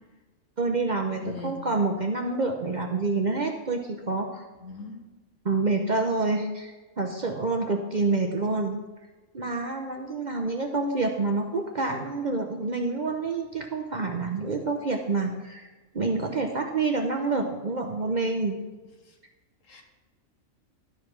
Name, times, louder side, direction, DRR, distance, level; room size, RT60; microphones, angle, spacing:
voice 1, 0.6-4.4 5.4-8.8 9.3-15.7 15.9-18.6, right 3 dB, 40° right, 4 dB, 0.7 m, -27 dB
voice 2, 1.2-1.6 4.6-5.1 19.7-19.8, left 2 dB, 70° left, 3 dB, 1.7 m, -39 dB
12.0 x 5.0 x 5.9 m, 1.2 s
omnidirectional pair, 1.4 m